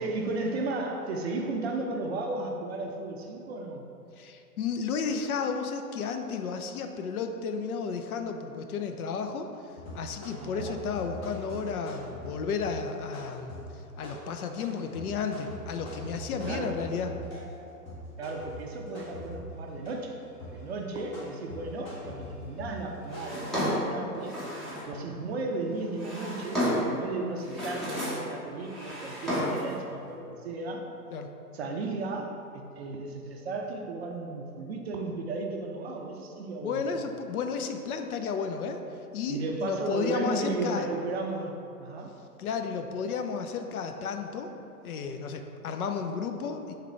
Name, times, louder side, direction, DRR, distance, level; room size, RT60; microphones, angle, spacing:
voice 1, 0.0-3.8 10.4-10.8 16.4-16.9 18.2-20.2 20.5-24.3 24.9-26.6 26.9-30.8 31.5-36.9 39.3-41.5 41.8-42.1, right 2 dB, 45° right, 2 dB, 0.4 m, -34 dB
voice 2, 4.2-9.5 9.9-13.5 14.0-17.1 31.1-31.3 36.6-38.8 39.1-40.9 42.4-44.5 44.8-46.7, left 5 dB, 65° left, 6 dB, 0.5 m, -33 dB
sound 1, 9.8-17.6 17.9-20.1 20.4-23.2, left 1 dB, 30° left, 1.1 m, -42 dB
Drawer open or close, 23.1-24.9 25.7-27.0 27.4-28.3 28.6-29.7, equal, ahead, 0.7 m, -32 dB
3.6 x 3.2 x 4.3 m, 2.7 s
figure-of-eight pair, 115°, 48 cm